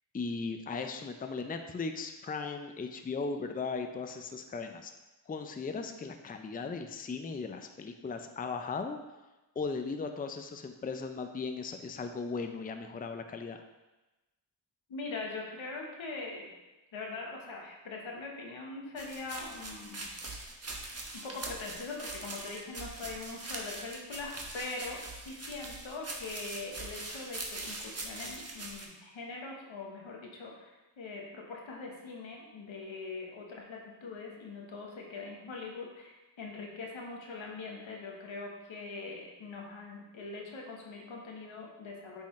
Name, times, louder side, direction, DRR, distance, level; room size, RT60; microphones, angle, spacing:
voice 1, 0.1-4.9 5.3-9.0 9.6-13.6, left 4 dB, 20° left, 6 dB, 0.4 m, -37 dB
voice 2, 14.9-16.5 16.9-20.0 21.1-30.7 31.0-42.2, left 3 dB, 85° left, 0 dB, 1.2 m, -42 dB
sound 1, 19.0-28.8, right 2 dB, 35° right, 1.1 m, -42 dB
8.3 x 3.7 x 3.2 m, 1.1 s
cardioid pair, 55°, 45 cm